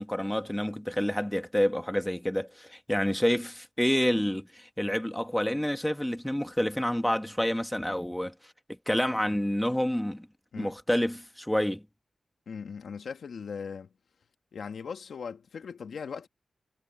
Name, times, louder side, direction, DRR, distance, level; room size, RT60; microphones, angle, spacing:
voice 1, 0.0-8.3 8.9-10.3 10.5-11.8, equal, 5° left, 1.6 m, -28 dB
voice 2, 12.5-13.9 14.5-16.3, left 6 dB, 85° left, 1.7 m, -39 dB
wide cardioid pair, 90°, 0 cm